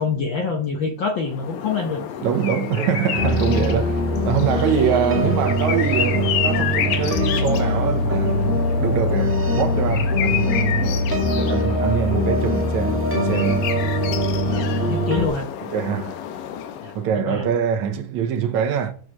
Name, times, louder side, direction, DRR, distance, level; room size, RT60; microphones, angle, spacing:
voice 1, 0.0-2.0 14.4-15.5 16.8-17.5, left 4 dB, 65° left, 1.2 m, -26 dB
sound 1, 1.2-17.1, left 9 dB, 80° left, 2.5 m, -30 dB
voice 2, 2.2-11.0 11.3-13.6 15.7-16.2 17.0-18.9, right 8 dB, 75° right, 2.2 m, -24 dB
sound 2, 3.1-15.3, left 1 dB, 5° right, 1.0 m, -22 dB
7.6 x 6.5 x 6.3 m
omnidirectional pair, 3.5 m